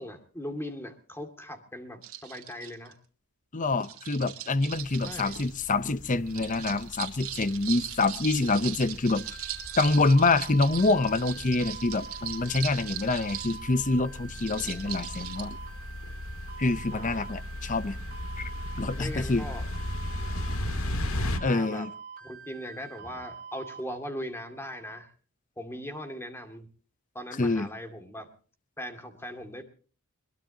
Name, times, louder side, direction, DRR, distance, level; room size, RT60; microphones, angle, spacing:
voice 1, 0.0-3.0 5.0-5.4 14.6-14.9 16.9-17.3 19.0-19.6 21.4-21.9 22.2-25.1 25.6-26.7 27.1-28.3 28.8-29.6, equal, 10° left, 6 dB, 2.4 m, -39 dB
sound 1, 2.0-2.9 3.8-5.6 6.3-13.6 14.4-15.4, right 11 dB, 70° right, 2.3 m, -39 dB
voice 2, 3.5-9.4 9.8-15.6 16.6-18.0 18.4-18.5 18.8-19.4 21.4-21.9 27.4-27.7, left 3 dB, 35° left, 14 dB, 0.8 m, -26 dB
sound 2, 4.7-21.4, left 1 dB, 70° left, 1.9 m, -37 dB
sound 3, 9.2-23.8, right 6 dB, 40° right, 5.7 m, -45 dB
22.0 x 22.0 x 2.9 m, 0.40 s
head